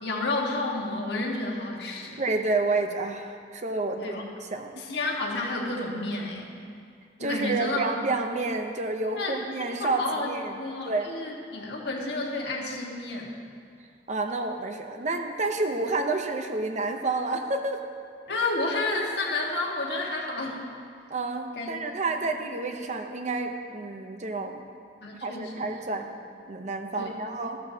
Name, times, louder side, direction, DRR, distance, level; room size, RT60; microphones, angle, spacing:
voice 1, 0.0-2.2 4.0-4.2 4.8-6.5 7.2-7.9 9.1-9.4 9.8-10.3 10.6-13.3 18.3-20.6 21.5-21.7 22.2-22.3 25.0-25.6 27.0-27.1, left 2 dB, 65° left, -2 dB, 1.6 m, -30 dB
voice 2, 2.2-4.1 4.5-4.8 7.2-11.2 14.1-17.9 21.1-24.6 25.2-26.1 26.5-27.6, right 3 dB, 40° right, 5 dB, 0.7 m, -29 dB
13.5 x 12.0 x 2.8 m, 2.3 s
head